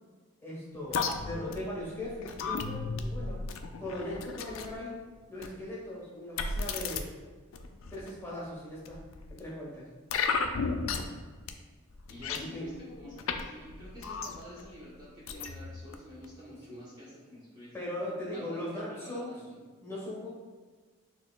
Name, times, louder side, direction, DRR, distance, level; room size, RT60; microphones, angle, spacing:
voice 1, 0.4-3.4 3.8-5.0 5.3-7.1 7.9-9.0 9.3-9.9 12.3-12.7 16.7-16.8 17.7-19.4 19.8-20.3, left 1 dB, 10° left, -6 dB, 1.0 m, -39 dB
sound 1, 0.9-4.8 5.4-5.6 6.4-7.0 7.5-8.1 8.9-9.4 10.1-11.2 11.5-11.6 11.9-13.4 13.7-14.6 15.3-16.0 16.2-16.3, left 4 dB, 65° left, 0.3 m, -34 dB
voice 2, 12.1-12.7 13.0-17.7 18.3-18.6 18.9-19.6, equal, 20° right, -8 dB, 0.9 m, -49 dB
6.4 x 3.0 x 2.2 m, 1.4 s
head